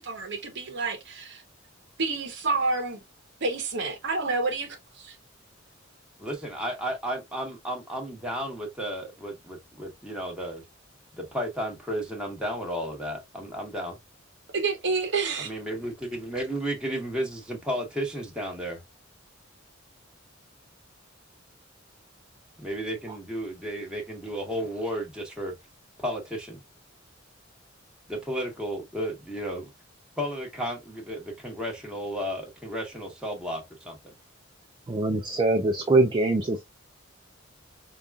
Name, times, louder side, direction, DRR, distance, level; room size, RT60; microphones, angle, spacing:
voice 1, 0.0-1.4 2.0-3.0 3.4-5.2 14.5-15.5, right 3 dB, 65° right, 0.9 m, -29 dB
voice 2, 6.2-10.6 11.2-14.0 15.4-18.8 22.6-25.5 26.0-26.6 28.1-29.6 30.2-34.1, equal, 5° right, 1.3 m, -33 dB
voice 3, 34.9-36.6, right 2 dB, 25° right, 0.3 m, -23 dB
5.2 x 2.3 x 2.3 m
head